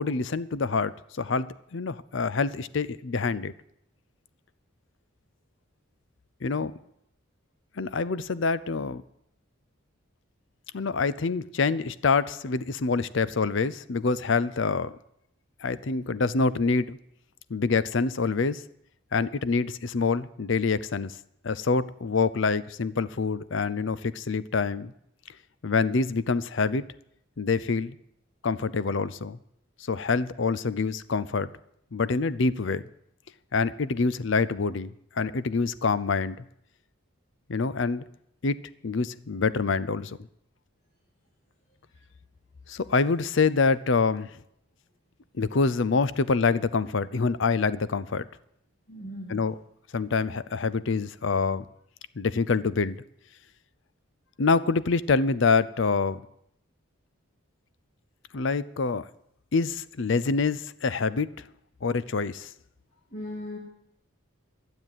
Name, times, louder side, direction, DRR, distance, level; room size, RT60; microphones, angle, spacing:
voice 1, 0.0-3.5 6.4-6.7 7.8-9.0 10.7-14.9 15.6-17.0 17.5-18.6 19.1-21.1 21.4-24.9 25.6-26.8 27.4-28.0 28.4-29.4 29.9-31.5 31.9-32.8 33.5-36.4 37.5-38.0 38.4-38.6 38.8-40.2 42.7-44.4 45.4-48.3 49.3-49.5 49.9-51.6 52.2-53.0 54.4-56.2 58.3-59.1 59.5-61.3 61.8-62.5, left 4 dB, 60° left, 18 dB, 0.6 m, -26 dB
voice 2, 48.9-49.4 63.1-63.6, left 1 dB, 35° left, -4 dB, 2.4 m, -37 dB
12.5 x 8.0 x 8.9 m, 0.74 s
head